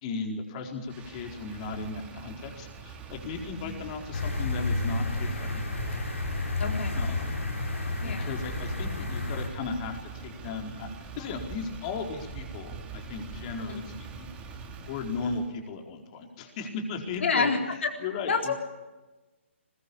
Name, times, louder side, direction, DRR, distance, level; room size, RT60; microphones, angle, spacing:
voice 1, 0.0-5.6 6.9-7.3 8.0-14.3 14.9-17.5 18.0-18.5, left 4 dB, 35° left, 3 dB, 4.4 m, -36 dB
Motor vehicle (road), 0.8-15.5, right 5 dB, 15° right, 3.5 m, -43 dB
sound 1, 4.1-9.5, left 3 dB, 85° left, 6.4 m, -31 dB
voice 2, 6.6-7.0 8.0-8.3 13.7-13.9 17.2-17.9 18.3-18.5, left 4 dB, 65° left, 3 dB, 4.0 m, -28 dB
21.5 x 20.5 x 8.6 m, 1.1 s
hypercardioid pair, 145°, 7 cm